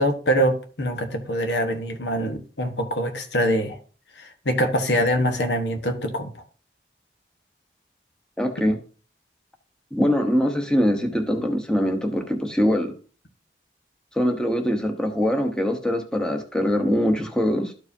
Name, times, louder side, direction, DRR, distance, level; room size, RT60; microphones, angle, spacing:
voice 1, 0.0-3.8 4.2-6.3, equal, 80° left, 1.3 m, -24 dB
voice 2, 8.4-8.8 9.9-12.9 14.1-17.7, equal, 5° left, 0.9 m, -23 dB
13.0 x 4.7 x 2.7 m
head